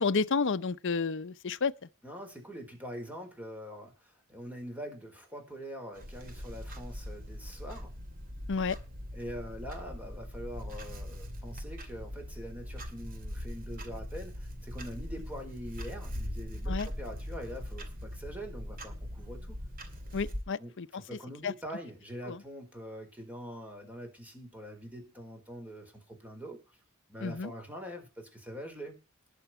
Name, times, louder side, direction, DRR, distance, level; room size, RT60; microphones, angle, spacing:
voice 1, 0.0-1.7 8.5-8.8 16.7-16.9 20.1-21.0 21.4-21.5 22.3-22.4 27.2-27.5, left 4 dB, 60° left, 0.7 m, -31 dB
voice 2, 2.0-7.9 9.1-19.6 20.6-26.6 27.1-29.0, equal, 5° right, 4.5 m, -44 dB
Clock, 6.0-20.4, equal, 45° right, 2.3 m, -41 dB
20.0 x 7.1 x 4.4 m
head